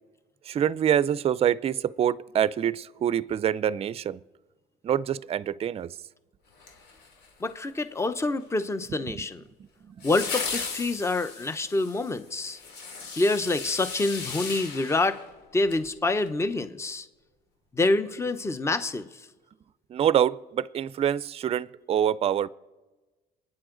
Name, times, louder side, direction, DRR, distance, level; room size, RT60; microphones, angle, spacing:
voice 1, 0.5-4.2 4.8-5.9 9.1-9.2 9.9-10.0 19.9-22.5, right 9 dB, 35° right, 0.4 m, -25 dB
sound 1, 6.6-7.5 10.0-15.8 16.2-16.3, left 4 dB, 75° left, 2.8 m, -36 dB
voice 2, 7.4-9.4 10.0-12.6 13.2-15.2 15.5-17.1 17.7-19.1, left 2 dB, 15° left, 0.8 m, -27 dB
28.0 x 9.8 x 3.9 m
cardioid pair, 110°, 17 cm